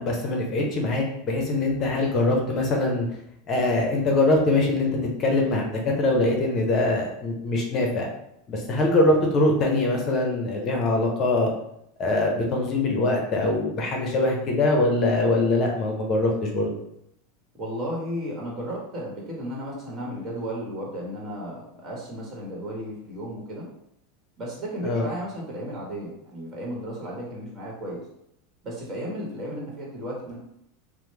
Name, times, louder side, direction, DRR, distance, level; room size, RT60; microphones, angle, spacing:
voice 1, 0.0-3.1 3.5-4.9 5.2-8.1 8.5-11.5 12.0-16.7 24.8-25.0, left 2 dB, 40° left, 0 dB, 0.7 m, -23 dB
voice 2, 17.5-23.7 24.4-28.0 28.6-30.4, equal, 30° right, -3 dB, 1.2 m, -34 dB
3.0 x 2.0 x 3.2 m, 0.78 s
hypercardioid pair, 110°, 0 cm